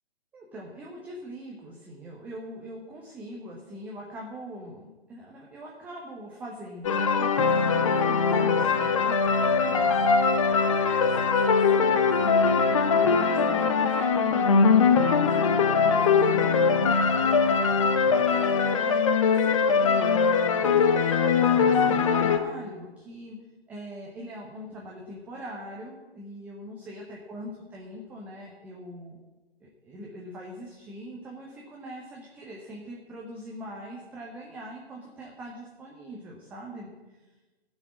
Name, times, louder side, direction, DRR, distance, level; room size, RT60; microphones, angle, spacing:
voice 1, 0.3-10.1 10.6-23.4 23.7-29.2 29.6-36.9, equal, 5° right, -2 dB, 0.7 m, -42 dB
sound 1, 6.8-22.4, left 5 dB, 30° left, 0.8 m, -22 dB
14.5 x 6.3 x 8.5 m, 1.2 s
figure-of-eight pair, 135°, 31 cm